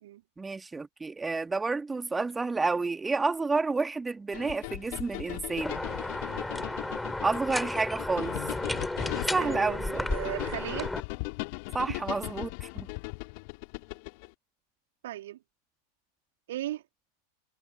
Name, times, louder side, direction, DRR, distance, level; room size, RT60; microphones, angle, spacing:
voice 1, 0.4-5.8 7.2-8.4 9.3-10.1 11.7-12.9, right 3 dB, 10° right, 2.7 m, -30 dB
sound 1, 4.3-14.3, left 32 dB, 45° left, 2.5 m, -38 dB
sound 2, 5.6-11.0, left 2 dB, 5° left, 3.9 m, -33 dB
voice 2, 9.4-10.9 11.9-12.0 15.0-15.4 16.5-16.8, right 14 dB, 55° right, 2.3 m, -36 dB
figure-of-eight pair, 90°, 0 cm